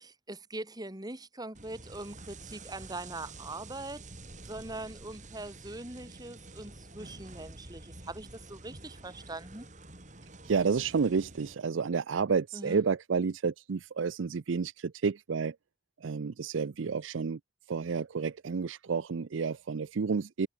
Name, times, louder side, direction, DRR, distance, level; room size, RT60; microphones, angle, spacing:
voice 1, 0.0-4.0 4.4-9.7 12.5-12.8, right 2 dB, 20° right, 2.3 m, -42 dB
sound 1, 1.5-11.5, right 2 dB, 40° right, 5.2 m, -49 dB
voice 2, 10.5-15.6 16.0-17.4 17.7-20.5, right 5 dB, 75° right, 0.5 m, -30 dB
head